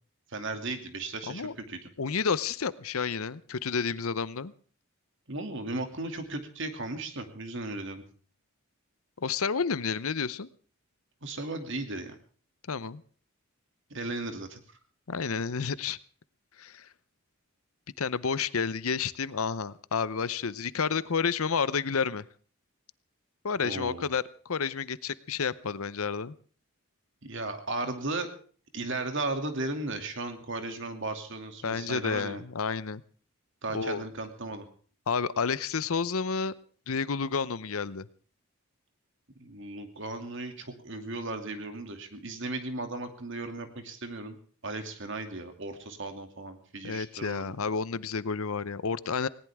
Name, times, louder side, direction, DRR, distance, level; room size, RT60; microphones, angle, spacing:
voice 1, 0.3-1.9 5.3-8.0 11.2-12.2 13.9-14.8 23.6-24.1 27.2-28.3 28.7-32.4 33.6-34.7 39.4-44.4 44.6-47.5, right 2 dB, 55° right, 6 dB, 2.6 m, -36 dB
voice 2, 2.0-4.5 9.2-10.5 12.7-13.0 15.1-16.0 16.6-16.9 18.0-22.3 23.4-26.3 31.6-33.0 33.7-34.1 35.1-36.5 36.9-38.1 46.8-49.3, left 5 dB, 75° left, 17 dB, 0.7 m, -30 dB
19.5 x 18.5 x 3.6 m, 0.43 s
head